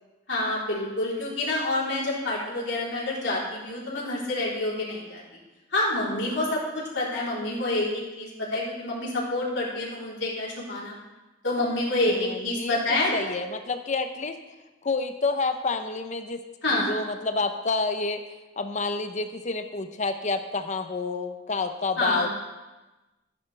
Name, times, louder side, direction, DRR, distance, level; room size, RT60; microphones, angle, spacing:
voice 1, 0.3-5.2 5.7-11.0 11.4-13.4 16.6-17.0 22.0-22.3, left 2 dB, 70° left, -6 dB, 3.7 m, -27 dB
voice 2, 12.1-14.4 14.8-16.4 16.7-18.2 18.6-22.3, left 3 dB, 40° left, 8 dB, 0.7 m, -29 dB
14.0 x 10.0 x 3.4 m, 1.1 s
head